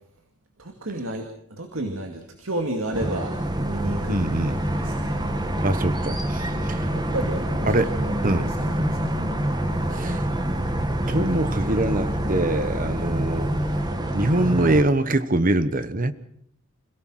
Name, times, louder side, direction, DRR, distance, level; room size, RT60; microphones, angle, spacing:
voice 1, 0.6-5.6 6.9-9.3 9.7-10.0, right 1 dB, 65° right, 4 dB, 2.4 m, -33 dB
sound 1, 2.9-14.8, right 1 dB, 20° right, 1.5 m, -27 dB
sound 2, 3.3-13.9, right 1 dB, 80° right, 6.1 m, -35 dB
voice 2, 4.1-4.6 5.6-6.9 7.7-7.9 8.2-8.5 9.9-10.2 11.1-13.5 14.1-16.1, right 1 dB, 40° right, 13 dB, 1.1 m, -23 dB
27.0 x 17.0 x 6.4 m, 0.70 s
head